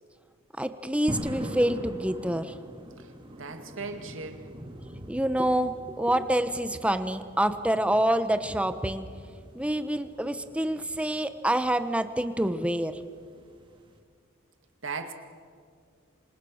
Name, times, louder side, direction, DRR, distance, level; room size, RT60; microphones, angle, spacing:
voice 1, 0.6-2.6 4.8-9.1 9.5-13.0, right 1 dB, 5° right, 10 dB, 1.1 m, -27 dB
sound 1, 1.1-14.0, equal, 25° right, 2.5 m, -43 dB
voice 2, 3.4-4.4 14.8-15.1, right 4 dB, 65° right, 6 dB, 2.3 m, -37 dB
27.5 x 26.5 x 6.5 m, 2.1 s
head